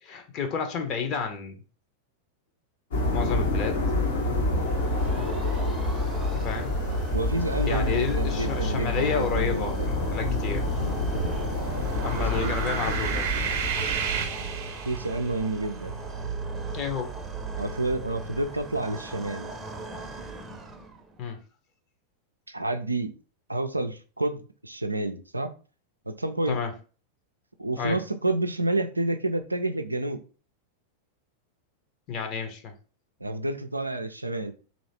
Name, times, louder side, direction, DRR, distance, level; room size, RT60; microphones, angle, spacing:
voice 1, 0.0-1.6 3.1-3.8 6.3-6.7 7.7-10.7 12.0-13.3 16.7-17.1 21.2-21.4 26.5-26.7 27.8-28.0 32.1-32.7, left 6 dB, 35° left, 5 dB, 0.9 m, -30 dB
sound 1, 2.9-14.3, left 2 dB, 60° left, 1.1 m, -28 dB
sound 2, 4.2-21.2, right 4 dB, 15° right, 0.7 m, -36 dB
voice 2, 7.1-9.9 12.2-12.5 14.9-16.0 17.6-19.5 22.5-23.1 23.5-25.5 26.1-26.6 27.6-30.2 33.2-34.5, right 2 dB, 85° right, 8 dB, 0.4 m, -29 dB
sound 3, 11.6-15.3, right 7 dB, 50° right, 0.8 m, -32 dB
3.2 x 2.8 x 4.2 m, 0.37 s
figure-of-eight pair, 90°, 0 cm